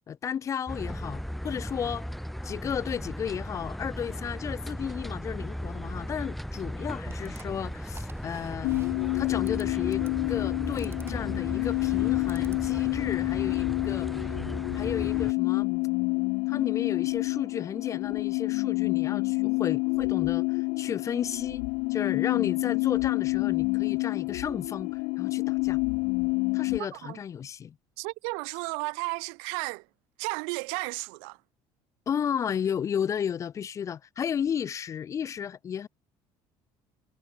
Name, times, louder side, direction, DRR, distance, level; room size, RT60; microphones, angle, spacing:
voice 1, 0.1-2.1 2.4-8.7 9.1-14.4 14.7-15.8 16.5-25.8 26.5-27.8 32.1-35.9, left 8 dB, 30° left, 0.5 m, -33 dB
sound 1, 0.7-15.3, equal, ahead, 0.7 m, -36 dB
sound 2, 7.0-12.9, right 5 dB, 25° right, 3.4 m, -51 dB
sound 3, 8.6-26.8, left 30 dB, 85° left, 0.6 m, -28 dB
voice 2, 26.8-27.2 28.0-29.8 30.2-31.4, right 40 dB or more, 90° right, 1.5 m, -33 dB
cardioid pair, 120°, 10 cm